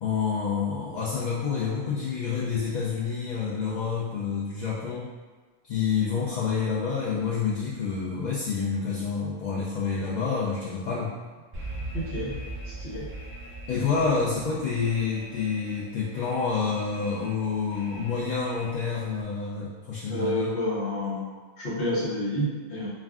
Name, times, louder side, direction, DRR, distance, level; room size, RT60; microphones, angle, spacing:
voice 1, 0.0-5.1 5.6-11.1 13.7-20.5, left 5 dB, 55° left, -8 dB, 0.5 m, -28 dB
Alarm, 11.5-19.2, right 1 dB, 15° right, 0.5 m, -41 dB
voice 2, 11.9-12.3 12.6-13.1 20.1-21.2 21.6-22.9, left 1 dB, 85° left, -9 dB, 1.1 m, -29 dB
2.4 x 2.2 x 3.5 m, 1.4 s
omnidirectional pair, 1.1 m